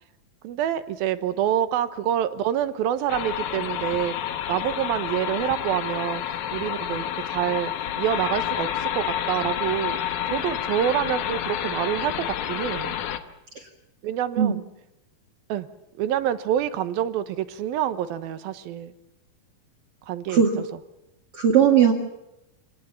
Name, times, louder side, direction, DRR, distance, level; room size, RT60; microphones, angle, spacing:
voice 1, 0.4-4.2 4.5-10.0 10.3-13.0 14.0-14.6 15.5-15.7 16.0-18.9 20.1-20.6, right 11 dB, 80° right, 12 dB, 2.9 m, -27 dB
sound 1, 3.1-13.2, left 10 dB, 65° left, 2.4 m, -29 dB
voice 2, 20.3-20.6 21.4-21.9, right 8 dB, 45° right, 0 dB, 2.7 m, -18 dB
27.5 x 19.5 x 7.1 m, 0.87 s
omnidirectional pair, 4.3 m